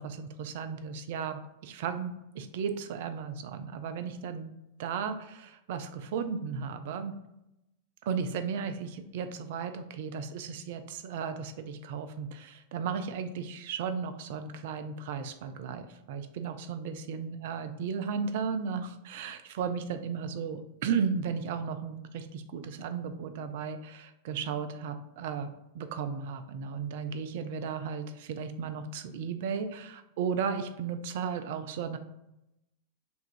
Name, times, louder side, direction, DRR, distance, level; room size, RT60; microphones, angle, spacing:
voice 1, 0.0-4.5 4.8-5.2 5.7-7.1 8.1-32.0, right 6 dB, 50° right, 9 dB, 0.4 m, -35 dB
3.4 x 2.4 x 4.4 m, 0.87 s
figure-of-eight pair, 90°, 0 cm